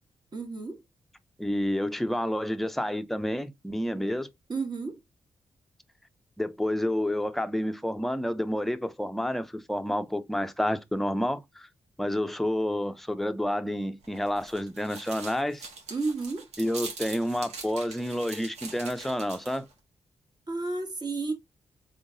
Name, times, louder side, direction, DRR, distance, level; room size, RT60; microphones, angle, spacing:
voice 1, 0.3-0.8 4.5-5.0 15.9-16.5 20.5-21.3, right 3 dB, 40° right, 1.4 m, -31 dB
voice 2, 1.4-4.3 6.4-11.7 12.0-15.7 16.6-19.7, left 1 dB, ahead, 0.5 m, -29 dB
sound 1, 14.0-19.7, right 4 dB, 85° right, 1.3 m, -43 dB
3.7 x 3.6 x 2.5 m
cardioid pair, 75°, 11 cm